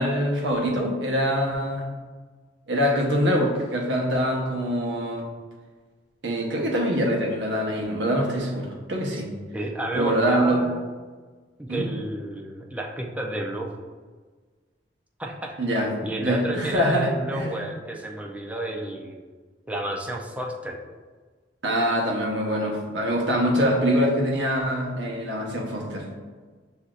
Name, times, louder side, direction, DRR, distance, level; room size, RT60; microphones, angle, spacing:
voice 1, 0.0-1.9 2.7-5.3 6.2-9.3 9.9-10.6 11.7-11.9 15.6-15.9 16.2-17.7 21.6-26.1, equal, 90° right, 0 dB, 0.9 m, -24 dB
voice 2, 9.5-10.9 11.6-13.8 15.2-15.7 16.0-19.2 19.7-20.8, right 1 dB, 10° right, 0 dB, 0.5 m, -31 dB
7.7 x 2.7 x 2.4 m, 1.4 s
head